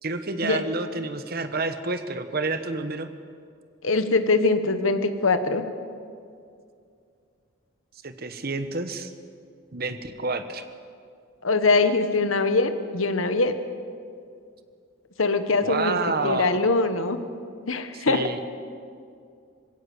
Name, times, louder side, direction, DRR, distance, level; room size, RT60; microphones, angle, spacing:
voice 1, 0.0-3.1 8.0-9.1 9.7-10.6 15.6-16.7 17.9-18.4, right 3 dB, 50° right, 9 dB, 1.2 m, -29 dB
voice 2, 3.8-5.6 11.4-13.5 15.2-16.0 16.2-17.2 17.7-18.3, left 3 dB, 75° left, 10 dB, 1.3 m, -22 dB
21.0 x 16.5 x 7.9 m, 2.4 s
head